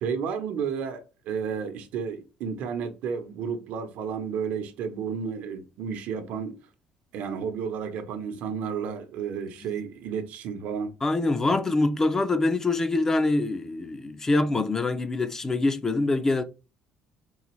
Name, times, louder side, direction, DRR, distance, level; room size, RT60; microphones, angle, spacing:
voice 1, 0.0-6.6 7.1-10.9, right 6 dB, 70° right, 0.8 m, -32 dB
voice 2, 11.0-16.4, left 2 dB, 15° left, 0.4 m, -24 dB
3.9 x 3.3 x 3.1 m
cardioid pair, 145°, 3 cm